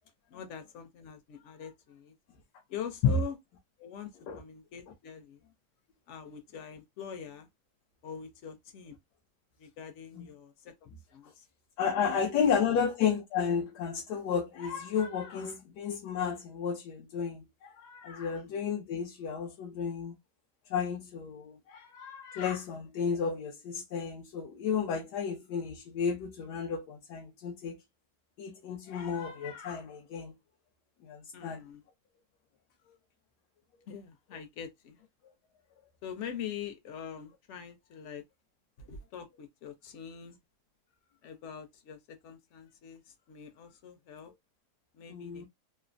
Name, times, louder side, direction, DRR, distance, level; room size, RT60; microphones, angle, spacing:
voice 1, 0.3-2.1 2.7-3.4 3.8-5.4 6.1-7.5 8.0-9.0 9.6-11.4 12.0-12.8 18.3-18.6 31.3-31.8 33.9-35.0 36.0-38.2 38.9-40.4 41.2-44.3 44.9-45.5, left 8 dB, 60° left, 0.8 m, -44 dB
voice 2, 11.8-20.2 20.7-27.8 28.4-30.3 31.0-31.6 45.1-45.5, left 7 dB, 80° left, 1.1 m, -32 dB
3.2 x 2.0 x 2.4 m
omnidirectional pair, 1.8 m